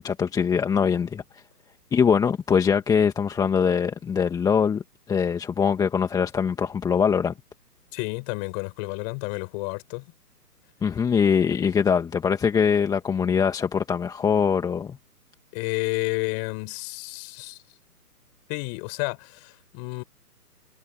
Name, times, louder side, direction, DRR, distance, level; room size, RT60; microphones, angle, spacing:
voice 1, 0.0-1.4 1.9-7.3 10.8-15.0, left 6 dB, 5° left, 2.2 m, -23 dB
voice 2, 7.9-10.1 15.5-17.6 18.5-20.0, left 37 dB, 25° left, 6.3 m, -31 dB
figure-of-eight pair, 140°, 47 cm